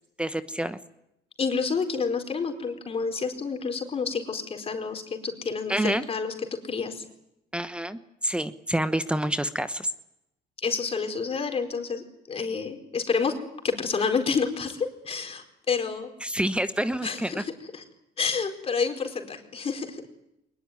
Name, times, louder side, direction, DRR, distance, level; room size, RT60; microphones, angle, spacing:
voice 1, 0.2-0.8 5.7-6.0 7.5-9.9 16.2-17.4, right 1 dB, 5° right, 11 dB, 1.1 m, -28 dB
voice 2, 1.4-6.3 6.6-7.0 10.6-13.3 13.6-16.1 17.0-17.8 18.2-20.0, left 5 dB, 35° left, 5 dB, 4.5 m, -29 dB
23.0 x 21.0 x 9.6 m, 0.83 s
cardioid pair, 110°, 17 cm